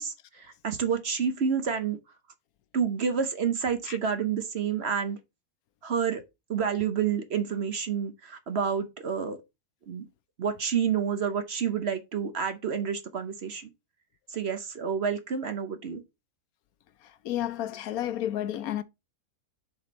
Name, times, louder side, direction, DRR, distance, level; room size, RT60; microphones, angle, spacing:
voice 1, 0.0-2.0 2.7-5.2 5.8-6.2 6.5-9.4 9.9-10.0 10.4-13.7 14.3-16.0, right 7 dB, 50° right, 1.0 m, -29 dB
voice 2, 17.2-18.8, left 12 dB, 75° left, 1.1 m, -31 dB
7.5 x 4.3 x 4.0 m
omnidirectional pair, 1.6 m